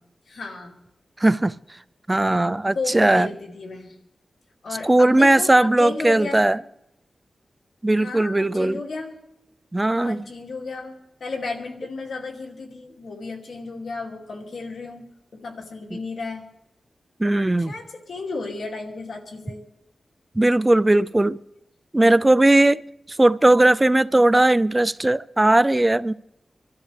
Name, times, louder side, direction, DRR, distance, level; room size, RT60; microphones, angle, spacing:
voice 1, 0.3-0.7 2.7-3.9 4.6-6.5 8.0-9.2 9.9-10.9 11.2-15.1 15.3-16.5 17.6-19.6, left 3 dB, 80° left, 2.6 m, -33 dB
voice 2, 1.2-1.5 2.1-3.3 4.8-6.6 7.8-8.8 9.7-10.3 15.9-16.0 17.2-17.7 20.4-21.4 21.9-22.8 23.1-26.1, right 1 dB, 25° right, 0.5 m, -18 dB
26.5 x 13.0 x 3.4 m
cardioid pair, 45°, 0 cm